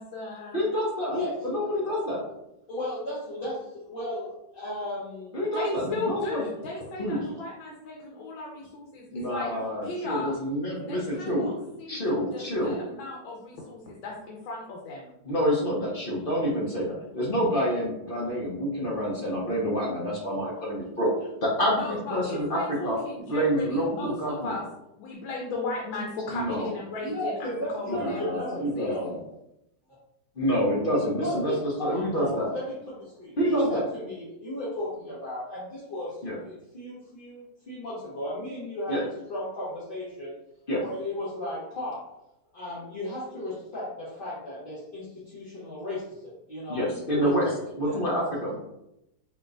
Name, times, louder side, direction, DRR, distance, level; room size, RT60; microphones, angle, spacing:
voice 1, 0.0-0.6 5.5-9.5 9.8-10.3 10.9-11.5 11.8-15.1 21.7-24.6 25.0-29.0, left 2 dB, 85° left, -2 dB, 1.5 m, -36 dB
voice 2, 0.5-2.2 5.3-6.4 7.0-7.2 9.1-11.5 11.9-12.8 15.2-21.1 21.4-23.0 23.3-24.6 26.3-26.7 27.9-29.2 30.4-31.5 31.8-32.5 33.4-33.8 36.2-36.4 38.9-39.0 40.7-40.8 46.7-47.4 47.8-48.6, equal, 55° left, -4 dB, 0.6 m, -27 dB
voice 3, 2.7-5.3 7.2-7.4 27.0-29.1 31.2-40.3 40.8-42.1 42.5-46.2 46.5-47.5 47.8-48.0, left 1 dB, 35° left, -10 dB, 0.9 m, -35 dB
4.8 x 2.9 x 2.5 m, 0.87 s
omnidirectional pair, 2.1 m